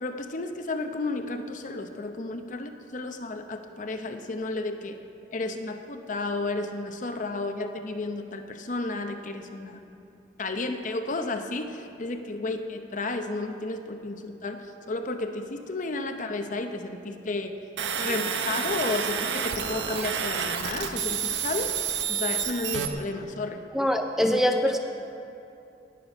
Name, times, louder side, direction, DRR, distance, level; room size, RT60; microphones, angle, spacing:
voice 1, 0.0-5.0 5.3-9.8 10.4-17.5 18.0-21.7 22.1-23.6 24.3-24.4, left 2 dB, 45° left, 7 dB, 0.7 m, -32 dB
sound 1, 17.8-22.9, right 7 dB, 85° right, 0.7 m, -29 dB
voice 2, 23.7-24.8, equal, 5° right, 5 dB, 0.4 m, -23 dB
18.5 x 6.7 x 5.3 m, 2.8 s
head